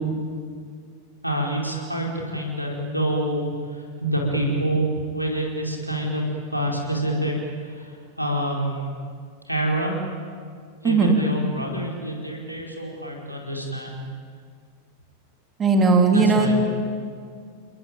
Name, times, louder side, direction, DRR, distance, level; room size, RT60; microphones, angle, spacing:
voice 1, 1.2-6.3 6.5-8.9 9.5-10.0 10.8-14.1 16.1-16.6, right 1 dB, 90° right, -1 dB, 4.7 m, -27 dB
voice 2, 10.8-11.2 15.6-16.6, right 4 dB, 20° right, 3 dB, 3.6 m, -17 dB
29.5 x 21.5 x 9.1 m, 2.1 s
figure-of-eight pair, 90°, 0 cm